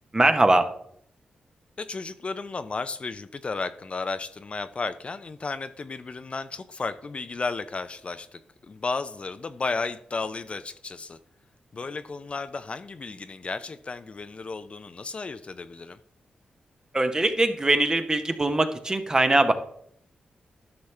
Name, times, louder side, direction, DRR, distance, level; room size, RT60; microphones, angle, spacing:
voice 1, 0.1-0.7 16.9-19.5, right 2 dB, 25° right, 8 dB, 0.9 m, -21 dB
voice 2, 1.8-11.2 11.7-16.0, left 4 dB, 40° left, 11 dB, 0.5 m, -33 dB
11.5 x 5.8 x 3.2 m, 0.68 s
cardioid pair, 75°, 3 cm